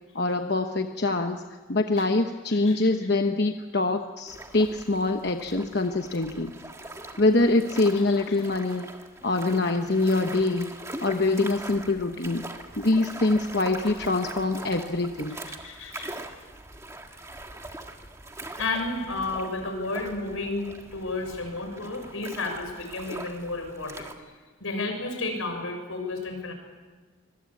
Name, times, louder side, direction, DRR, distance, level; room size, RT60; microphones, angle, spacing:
voice 1, 0.1-1.4 1.7-6.6 7.2-8.9 9.2-10.7 11.0-12.5 12.8-15.4, left 2 dB, 50° left, 5 dB, 1.0 m, -24 dB
sound 1, 4.3-24.1, right 2 dB, 15° right, 1.6 m, -42 dB
voice 2, 15.5-16.1 18.6-24.1 24.6-26.5, left 3 dB, 90° left, 4 dB, 6.4 m, -32 dB
25.5 x 21.5 x 8.6 m, 1.4 s
head